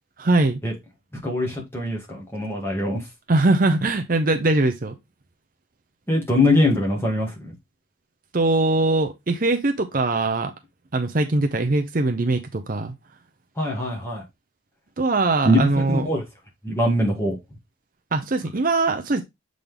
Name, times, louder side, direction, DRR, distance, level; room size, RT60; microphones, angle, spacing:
voice 1, 0.2-0.6 3.3-4.9 8.3-10.5 10.9-12.9 15.0-16.1 18.1-19.2, right 2 dB, 45° right, 0.7 m, -21 dB
voice 2, 1.2-3.0 6.1-7.5 13.6-14.2 15.4-16.2 16.6-17.4, left 1 dB, 10° left, 2.0 m, -22 dB
7.1 x 3.9 x 3.4 m
head